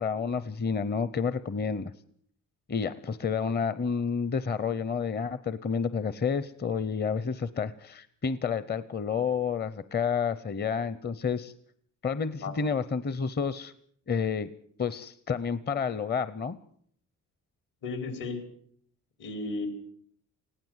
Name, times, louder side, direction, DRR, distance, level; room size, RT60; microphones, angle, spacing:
voice 1, 0.0-1.9 2.7-11.5 12.0-13.7 14.1-14.5 14.8-16.6, left 6 dB, 30° left, 16 dB, 0.8 m, -30 dB
voice 2, 17.8-18.4 19.2-19.7, left 3 dB, 75° left, 8 dB, 5.0 m, -34 dB
20.0 x 16.0 x 8.1 m, 0.63 s
cardioid pair, 115°, 33 cm